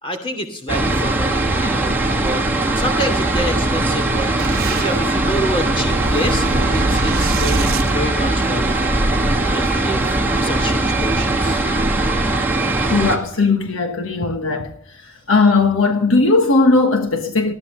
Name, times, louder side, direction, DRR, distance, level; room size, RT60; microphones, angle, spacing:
voice 1, 0.0-4.3 4.7-6.5 6.7-11.6, equal, 25° left, 2.8 m, -27 dB
sound 1, 0.7-13.2, right 2 dB, 10° right, 2.0 m, -20 dB
Boom, 4.4-8.8, right 2 dB, 45° right, 1.4 m, -25 dB
voice 2, 12.8-14.7 15.3-17.5, left 3 dB, 65° left, 1.3 m, -17 dB
19.5 x 13.0 x 3.2 m
head